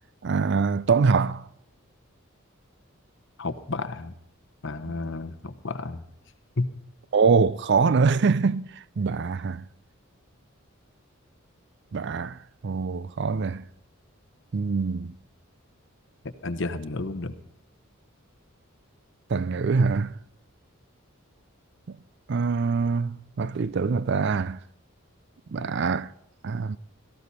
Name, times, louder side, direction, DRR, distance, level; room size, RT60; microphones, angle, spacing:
voice 1, 0.2-1.5 7.1-8.7 9.0-9.6 11.9-13.6 14.5-15.1 19.3-20.1 22.3-24.6 25.5-26.1 26.4-26.8, right 5 dB, 55° right, 0.4 m, -24 dB
voice 2, 3.4-4.2 4.6-6.0 6.6-6.7 16.2-17.4, left 3 dB, 60° left, 1.0 m, -31 dB
17.0 x 14.5 x 4.2 m
head